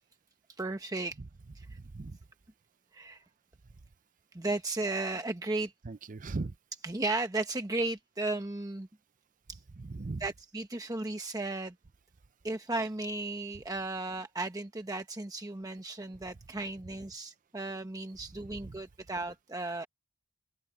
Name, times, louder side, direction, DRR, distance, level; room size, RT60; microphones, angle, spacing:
voice 1, 0.6-1.2 1.5-1.8 2.9-3.2 4.3-5.7 6.8-8.9 9.5-9.6 10.2-11.7 12.4-19.9, right 2 dB, 15° right, 0.9 m, -35 dB
voice 2, 1.7-2.2 5.8-6.5 9.7-10.3 18.6-18.8 19.6-19.8, right 3 dB, 40° right, 0.6 m, -39 dB
open air
head